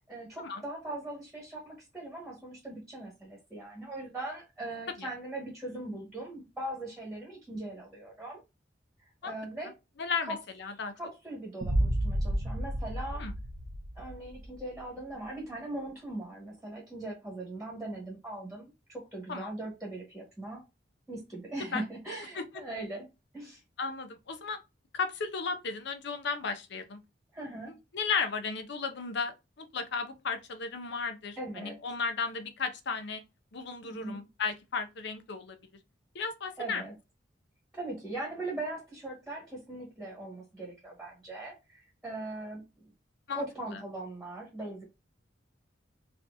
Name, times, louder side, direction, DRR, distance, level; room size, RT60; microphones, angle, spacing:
voice 1, 0.1-8.4 9.2-9.7 10.3-10.4 11.0-13.3 13.9-20.6 21.1-23.1 23.3-23.6 27.3-27.8 31.4-31.8 33.8-34.2 36.6-36.9 37.7-42.6 43.3-44.9, right 2 dB, ahead, 1.4 m, -40 dB
voice 2, 10.0-10.9 13.2-13.3 19.3-19.5 21.7-21.8 22.3-22.4 23.8-24.6 24.9-27.0 27.6-33.2 33.5-35.6 36.1-36.8 43.3-43.8, left 5 dB, 65° left, 0.7 m, -35 dB
sound 1, 11.6-14.6, right 1 dB, 50° right, 0.6 m, -31 dB
4.1 x 2.9 x 2.6 m
head